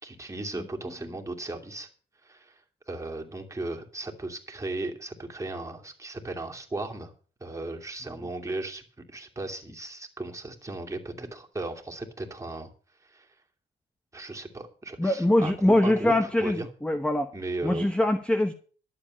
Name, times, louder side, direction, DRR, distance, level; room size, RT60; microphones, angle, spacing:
voice 1, 0.0-1.9 2.2-2.6 2.9-7.1 7.4-12.7 13.0-13.3 14.1-16.7 17.3-17.9, right 2 dB, 15° right, 1 dB, 2.7 m, -36 dB
voice 2, 15.0-17.3 17.6-18.5, left 1 dB, 5° left, 9 dB, 0.9 m, -23 dB
12.0 x 7.4 x 7.7 m, 0.42 s
cardioid pair, 90°, 20 cm